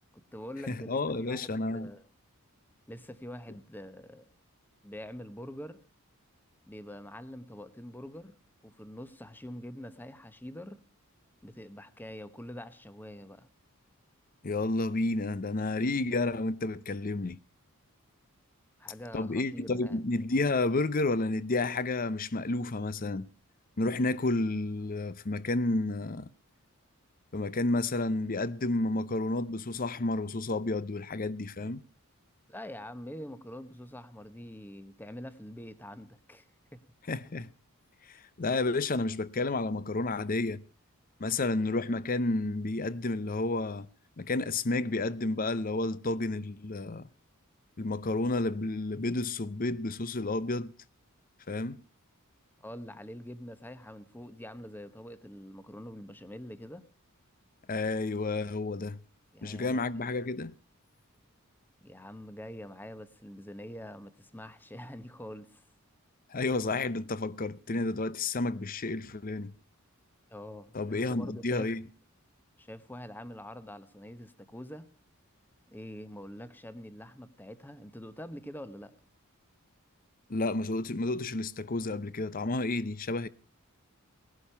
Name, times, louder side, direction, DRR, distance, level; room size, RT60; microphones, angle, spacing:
voice 1, 0.1-2.0 2.9-4.2 4.8-5.8 6.7-8.4 8.6-10.8 11.4-13.5 18.8-20.0 32.5-36.5 36.7-36.8 52.6-56.8 59.3-59.8 61.8-65.6 70.3-71.8 72.6-74.9 75.7-78.9, left 1 dB, 10° left, 0.9 m, -45 dB
voice 2, 0.7-1.9 14.4-17.4 19.1-23.3 23.8-26.3 27.3-31.8 37.1-37.5 38.4-40.6 41.2-43.9 44.2-47.1 47.8-50.7 51.5-51.8 57.7-59.0 59.4-60.5 66.3-69.5 70.7-71.8 80.3-83.3, left 2 dB, 40° left, 0.7 m, -31 dB
18.5 x 11.5 x 5.6 m
head